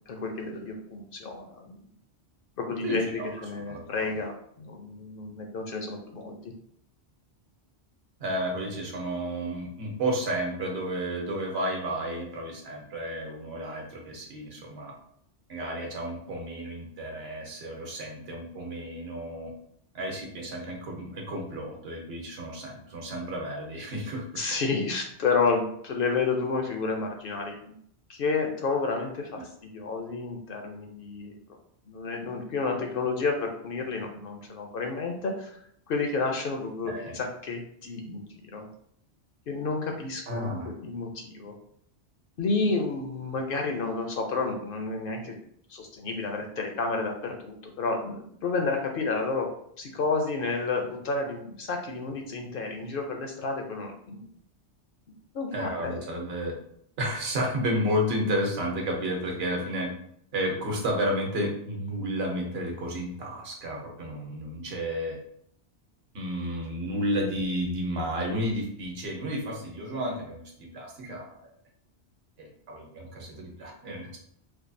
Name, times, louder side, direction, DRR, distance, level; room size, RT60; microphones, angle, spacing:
voice 1, 0.1-1.8 2.6-4.3 4.6-6.4 24.4-27.6 28.1-31.4 31.9-35.6 35.9-38.7 39.5-41.5 42.4-45.4 45.7-49.5 49.8-54.3 55.3-56.0, left 4 dB, 60° left, 3 dB, 0.7 m, -30 dB
voice 2, 2.8-3.3 3.7-4.1 8.2-14.9 15.5-19.5 19.9-24.4 36.8-37.1 40.3-40.7 55.5-56.5 57.0-59.9 60.3-65.2 66.1-71.5 72.4-74.2, equal, 65° right, 1 dB, 1.0 m, -32 dB
4.4 x 2.3 x 2.6 m, 0.68 s
omnidirectional pair, 1.1 m